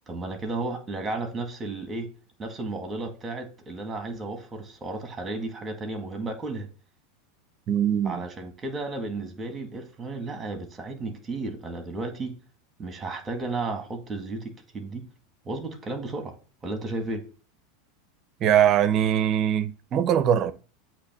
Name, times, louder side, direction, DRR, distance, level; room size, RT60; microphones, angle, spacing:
voice 1, 0.1-2.1 2.4-6.7 8.0-12.3 12.8-15.0 15.4-16.3 16.6-17.2, right 2 dB, 20° right, 2.1 m, -33 dB
voice 2, 7.7-8.3 18.4-20.5, right 9 dB, 40° right, 0.8 m, -22 dB
8.2 x 3.1 x 6.2 m
supercardioid pair, 130°, 0 cm